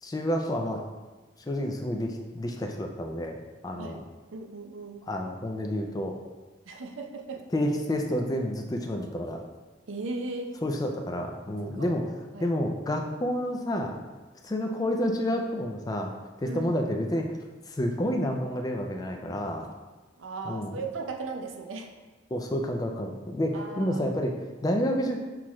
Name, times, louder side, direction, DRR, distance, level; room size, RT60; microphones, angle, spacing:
voice 1, 0.0-0.8 1.5-3.4 3.6-4.0 5.1-6.2 7.5-9.4 10.6-12.0 12.4-14.0 14.4-16.1 16.4-17.4 17.7-19.7 20.4-20.8 22.3-25.2, equal, 20° left, 2 dB, 0.3 m, -29 dB
voice 2, 4.3-5.0 6.7-7.4 9.9-10.5 11.6-12.0 12.3-12.5 16.4-16.8 20.2-21.9 23.5-24.0, right 3 dB, 80° right, 3 dB, 0.5 m, -37 dB
5.8 x 2.4 x 3.1 m, 1.2 s
head